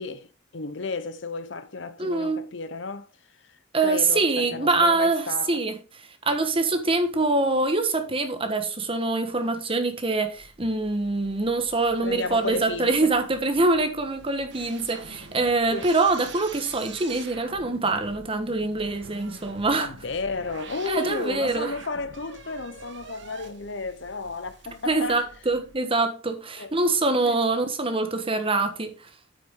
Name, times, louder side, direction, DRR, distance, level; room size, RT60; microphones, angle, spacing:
voice 1, 0.0-3.1 3.4-5.6 12.0-13.1 15.7-15.9 19.8-25.2 26.6-26.7 27.2-27.4, left 4 dB, 65° left, 0.9 m, -33 dB
voice 2, 2.0-2.4 3.7-5.8 6.2-19.9 20.9-21.7 24.9-29.1, right 3 dB, 30° right, 1.3 m, -24 dB
sound 1, 10.2-25.8, right 4 dB, 60° right, 1.4 m, -46 dB
8.6 x 6.8 x 3.7 m
head